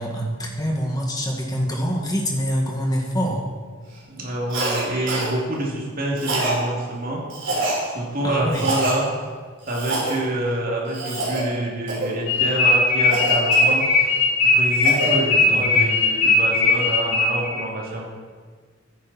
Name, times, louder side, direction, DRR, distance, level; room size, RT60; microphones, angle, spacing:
voice 1, 0.0-3.5 8.2-8.7 15.5-15.9, equal, 20° left, 0 dB, 2.0 m, -25 dB
voice 2, 4.1-7.2 7.9-9.1 9.7-13.9 14.4-18.1, right 1 dB, 45° right, -2 dB, 2.7 m, -27 dB
Cough, 4.5-4.8 5.1-5.3 6.2-6.6 7.3-7.8 8.5-8.9 9.7-10.2 10.9-11.4 11.9-12.1 13.1-14.1 14.5-15.1, right 2 dB, 60° right, 3.9 m, -26 dB
sound 1, 12.3-17.6, left 3 dB, 75° left, 4.1 m, -18 dB
14.0 x 10.5 x 4.3 m, 1.5 s
head